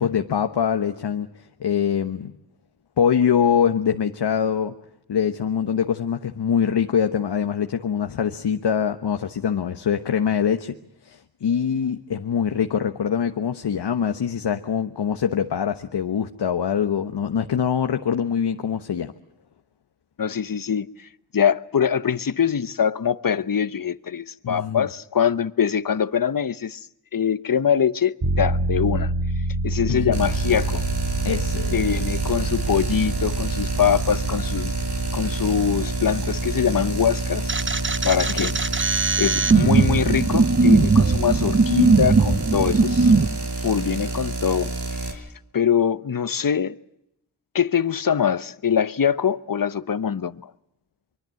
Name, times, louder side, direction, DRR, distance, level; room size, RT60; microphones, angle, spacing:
voice 1, 0.0-2.3 3.0-4.7 5.1-10.8 11.0-19.1 24.4-24.9 29.9-30.2 31.2-31.7 38.4-38.5, left 7 dB, 75° left, 1.1 m, -23 dB
voice 2, 20.2-21.1 21.3-26.8 27.1-29.1 29.6-30.8 31.7-34.7 35.1-37.5 38.0-38.5 39.2-43.1 43.6-44.7 45.0-45.2 45.5-46.8 47.5-50.4, left 7 dB, 55° left, 1.0 m, -23 dB
sound 1, 28.2-40.1, right 3 dB, 55° right, 3.6 m, -29 dB
sound 2, 30.1-45.1, right 2 dB, 75° right, 5.9 m, -29 dB
sound 3, 37.5-43.3, right 4 dB, 30° right, 0.9 m, -19 dB
24.5 x 23.5 x 7.8 m
cardioid pair, 45°, 41 cm